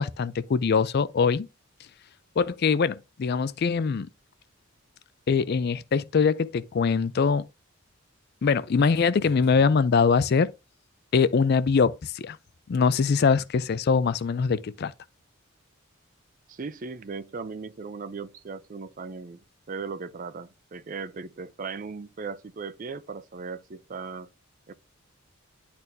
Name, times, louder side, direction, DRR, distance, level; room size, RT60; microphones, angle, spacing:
voice 1, 0.0-1.5 2.4-4.1 5.3-7.5 8.4-10.5 11.1-12.4 12.7-14.9, left 5 dB, 50° left, 0.4 m, -23 dB
sound 1, 9.2-10.4, left 1 dB, 10° left, 4.1 m, -51 dB
voice 2, 16.5-24.3 24.7-24.8, right 4 dB, 40° right, 0.4 m, -37 dB
10.5 x 4.3 x 2.7 m
head